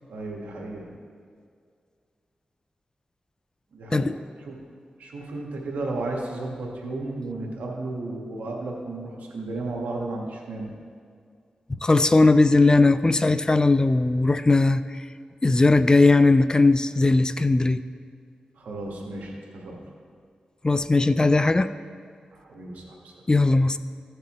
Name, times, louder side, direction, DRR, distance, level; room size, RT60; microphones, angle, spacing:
voice 1, 0.1-0.9 3.7-4.2 4.4-4.6 5.0-10.7 18.6-19.8 22.3-23.1, right 2 dB, 90° right, -1 dB, 1.5 m, -34 dB
voice 2, 11.8-14.8 15.4-17.8 20.6-21.7 23.3-23.8, left 3 dB, 30° left, 13 dB, 0.4 m, -18 dB
15.0 x 6.6 x 3.1 m, 2.2 s
cardioid pair, 50°, 3 cm